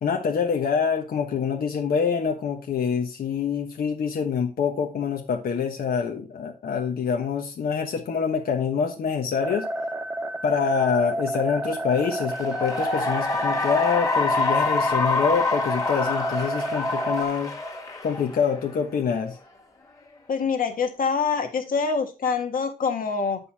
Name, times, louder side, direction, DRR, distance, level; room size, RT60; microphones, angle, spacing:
voice 1, 0.0-9.7 10.4-17.5 18.0-19.4, left 6 dB, 90° left, 2 dB, 1.3 m, -25 dB
sound 1, 9.4-17.2, right 2 dB, 10° right, 0.8 m, -30 dB
Cheering / Applause, 12.2-18.9, left 3 dB, 20° left, 1.9 m, -27 dB
voice 2, 20.3-23.4, left 5 dB, 70° left, 5 dB, 1.6 m, -25 dB
9.2 x 5.5 x 4.2 m, 0.30 s
wide cardioid pair, 175°, 15 cm